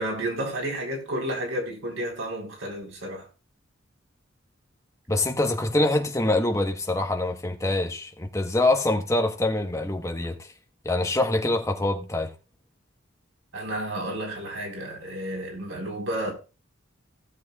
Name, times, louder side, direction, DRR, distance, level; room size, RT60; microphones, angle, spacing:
voice 1, 0.0-3.3 13.5-16.3, right 1 dB, 85° right, 4.1 m, -31 dB
voice 2, 5.1-10.5 10.8-12.3, left 2 dB, 15° left, 1.1 m, -25 dB
17.0 x 7.5 x 2.4 m
head